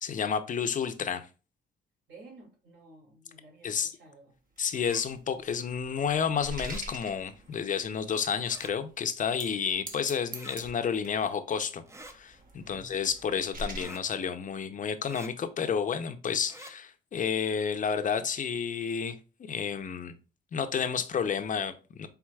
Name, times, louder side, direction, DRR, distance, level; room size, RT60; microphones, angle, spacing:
voice 1, 0.0-1.3 3.6-3.9 4.6-20.1 20.5-22.1, left 7 dB, 40° left, 0.6 m, -31 dB
voice 2, 2.1-4.3 12.6-12.9, right 2 dB, 60° right, 2.3 m, -53 dB
sound 1, 4.6-7.9 8.5-8.6 9.2-9.6 9.9-11.3 12.0-13.8, right 2 dB, 45° right, 1.0 m, -44 dB
sound 2, 4.8-5.0 6.6-6.8 8.4-8.7 10.3-10.6 11.9-12.2 13.7-14.0 15.0-15.3 16.4-16.7, right 2 dB, 15° right, 0.5 m, -47 dB
4.6 x 3.5 x 2.3 m
cardioid pair, 90°, 20 cm